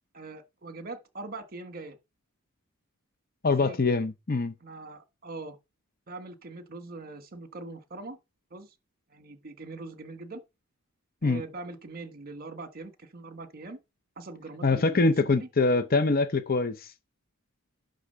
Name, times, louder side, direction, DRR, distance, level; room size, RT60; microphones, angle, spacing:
voice 1, 0.1-2.0 3.4-3.8 4.6-5.6 6.1-8.2 8.5-8.7 9.1-10.4 11.2-13.8 14.2-15.5, right 3 dB, 40° right, 1.4 m, -42 dB
voice 2, 3.4-4.5 11.2-11.4 14.6-16.9, left 3 dB, 40° left, 0.7 m, -24 dB
11.0 x 3.9 x 6.7 m
head